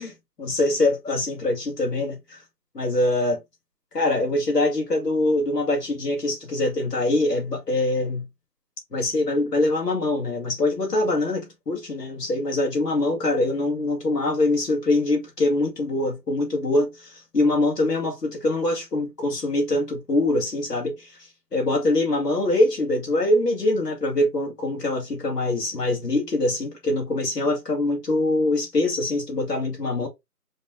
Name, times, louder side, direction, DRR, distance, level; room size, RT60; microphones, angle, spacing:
voice 1, 0.4-2.4 2.7-3.4 3.9-8.3 8.9-21.2 21.5-30.1, left 2 dB, 75° left, 2.4 m, -23 dB
5.4 x 3.6 x 2.3 m
figure-of-eight pair, 165°, 49 cm